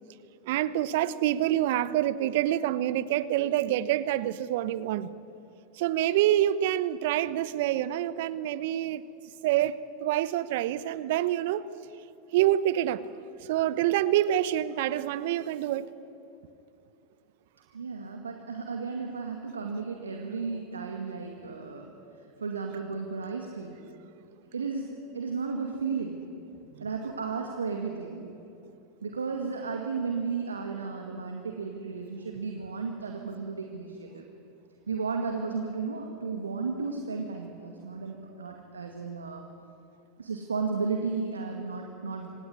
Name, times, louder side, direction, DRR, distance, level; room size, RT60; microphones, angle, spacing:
voice 1, 0.4-5.1 5.8-9.0 9.4-11.7 12.3-13.0 13.4-15.9 26.8-26.9, right 12 dB, 65° right, 16 dB, 1.0 m, -26 dB
voice 2, 17.7-21.9 22.4-23.8 24.5-26.3 26.8-28.3 29.0-34.2 34.9-39.4 40.2-42.3, right 4 dB, 85° right, 3 dB, 2.1 m, -34 dB
25.5 x 18.0 x 9.7 m, 2.8 s
hypercardioid pair, 90°, 0 cm